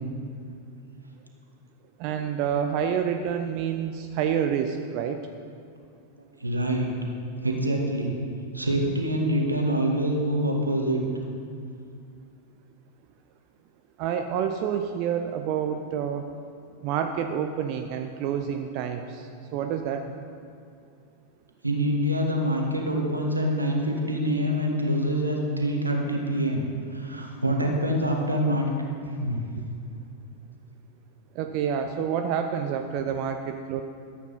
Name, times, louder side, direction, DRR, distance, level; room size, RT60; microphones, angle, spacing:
voice 1, 2.0-5.2 14.0-16.3 16.8-20.2 31.3-33.8, right 8 dB, 45° right, 6 dB, 0.6 m, -28 dB
voice 2, 6.4-6.9 7.4-8.1 8.5-11.0 21.6-26.6 26.9-28.7 29.0-29.4, equal, 85° right, 1 dB, 1.7 m, -25 dB
13.0 x 8.4 x 5.6 m, 2.4 s
figure-of-eight pair, 90°, 0 cm